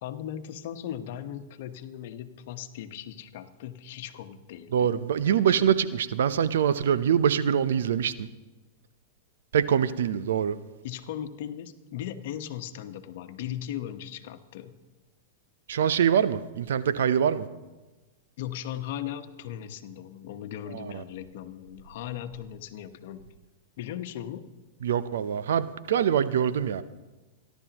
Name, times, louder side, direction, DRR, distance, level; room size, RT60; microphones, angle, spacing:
voice 1, 0.0-5.0 5.3-5.6 10.8-14.7 18.4-23.2 23.8-24.4, left 10 dB, 65° left, 9 dB, 1.1 m, -38 dB
voice 2, 4.7-8.3 9.5-10.6 15.7-17.5 20.7-21.0 24.8-26.8, right 8 dB, 75° right, 14 dB, 0.7 m, -24 dB
28.5 x 11.5 x 3.0 m, 1.2 s
hypercardioid pair, 115°, 0 cm